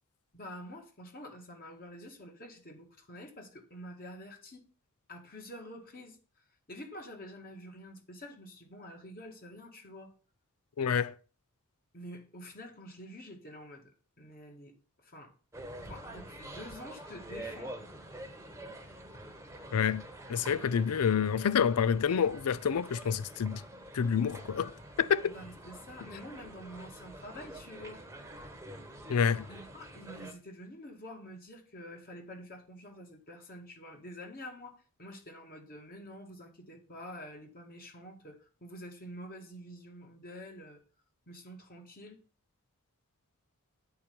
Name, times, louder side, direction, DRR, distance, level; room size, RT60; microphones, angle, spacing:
voice 1, 0.3-4.6 5.1-6.2 6.7-10.1 11.9-13.9 14.2-14.7 15.0-15.3 15.8-17.8 25.2-28.0 29.5-40.8 41.3-42.2, equal, 40° left, 2.0 m, -47 dB
voice 2, 10.8-11.1 19.7-20.0 20.3-23.6 23.9-25.3 29.1-29.5, left 7 dB, 80° left, 0.5 m, -28 dB
sound 1, 15.5-30.3, right 1 dB, 10° right, 1.2 m, -47 dB
8.8 x 4.5 x 6.9 m
head